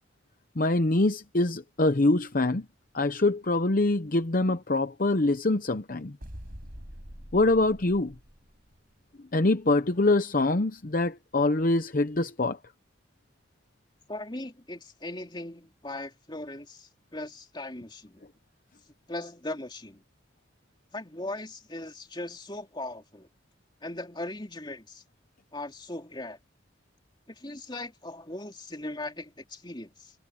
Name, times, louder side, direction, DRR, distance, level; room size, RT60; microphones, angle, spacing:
voice 1, 0.6-2.7 2.9-6.2 7.3-8.1 9.3-12.6, left 2 dB, 45° left, 0.8 m, -24 dB
sound 1, 6.2-8.9, equal, 45° right, 7.2 m, -45 dB
voice 2, 14.1-18.3 19.1-20.0 20.9-23.3 23.8-25.0 25.5-26.4 27.4-30.1, left 2 dB, 25° left, 3.0 m, -39 dB
head